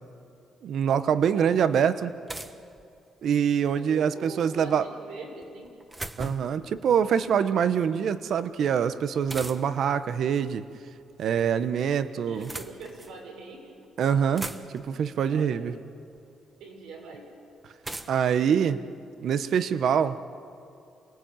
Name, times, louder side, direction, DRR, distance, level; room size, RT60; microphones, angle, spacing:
voice 1, 0.6-2.1 3.2-4.9 6.2-10.6 11.2-12.5 14.0-15.7 18.1-18.8 19.2-20.2, right 8 dB, 65° right, 12 dB, 1.1 m, -25 dB
sound 1, 2.3-3.4 5.4-6.6 9.3-9.9 11.0-11.6 12.2-13.2 13.8-13.9 14.1-15.0 16.1-16.2 17.8-19.4, right 2 dB, 20° right, 1.4 m, -40 dB
voice 2, 3.8-5.7 12.2-13.8 15.3-15.9 16.6-17.4, right 4 dB, 85° right, 1 dB, 6.5 m, -43 dB
28.0 x 19.0 x 9.1 m, 2.6 s
cardioid pair, 90°, 0 cm